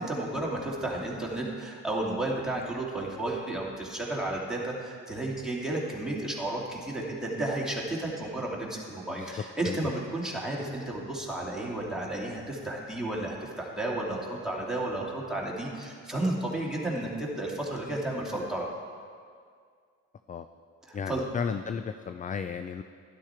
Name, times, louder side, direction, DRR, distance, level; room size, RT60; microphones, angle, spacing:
voice 1, 0.0-18.7 20.9-21.2, right 1 dB, ahead, -4 dB, 2.7 m, -32 dB
voice 2, 9.1-9.9 20.3-20.5 20.9-22.8, left 6 dB, 25° left, 9 dB, 0.4 m, -34 dB
12.0 x 11.0 x 4.4 m, 2.1 s
cardioid pair, 90°, 30 cm